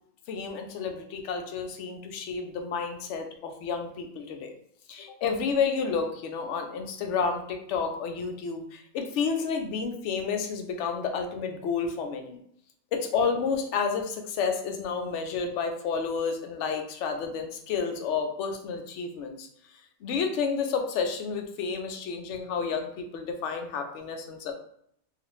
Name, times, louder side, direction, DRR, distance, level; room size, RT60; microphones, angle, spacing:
voice 1, 0.3-4.5 4.9-12.4 12.9-19.5 20.0-24.5, left 5 dB, 65° left, 4 dB, 0.8 m, -30 dB
2.5 x 2.4 x 3.0 m, 0.68 s
omnidirectional pair, 1.5 m